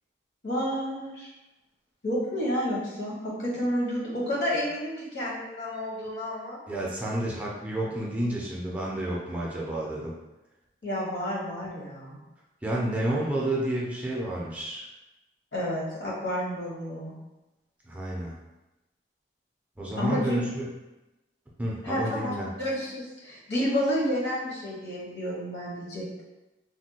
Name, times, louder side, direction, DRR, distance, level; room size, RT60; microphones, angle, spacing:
voice 1, 0.4-1.3 2.0-6.6 10.8-12.2 15.5-17.1 20.0-20.4 21.8-26.2, equal, 75° left, -6 dB, 1.1 m, -30 dB
voice 2, 6.7-10.2 12.6-14.9 17.9-18.3 19.8-20.6 21.6-22.5, right 1 dB, 10° right, -5 dB, 0.4 m, -30 dB
3.4 x 2.1 x 2.8 m, 1.0 s
head